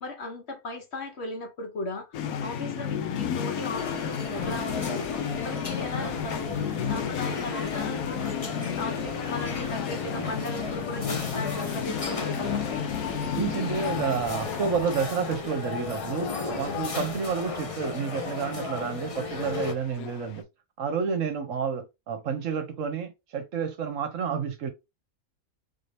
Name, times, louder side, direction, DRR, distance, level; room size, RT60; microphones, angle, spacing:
voice 1, 0.0-5.1 5.4-6.5 6.9-12.7, left 2 dB, 50° left, 1.1 m, -37 dB
sound 1, 2.1-20.4, left 8 dB, 80° left, 1.1 m, -33 dB
sound 2, 3.6-19.7, left 3 dB, 35° left, 0.6 m, -36 dB
voice 2, 13.3-20.4 20.8-24.7, right 6 dB, 65° right, 1.1 m, -30 dB
4.1 x 2.7 x 3.2 m
omnidirectional pair, 1.6 m